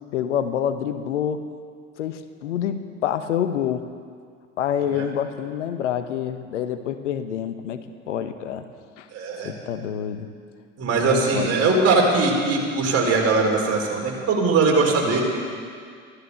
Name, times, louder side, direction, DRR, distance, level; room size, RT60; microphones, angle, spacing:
voice 1, 0.1-1.4 2.0-3.9 4.6-8.6 9.0-9.1 9.4-10.3 11.0-11.5, left 9 dB, 80° left, 10 dB, 1.0 m, -27 dB
voice 2, 9.1-9.5 10.8-15.2, right 3 dB, 40° right, -1 dB, 4.4 m, -20 dB
15.0 x 13.0 x 7.0 m, 2.1 s
hypercardioid pair, 70°, 36 cm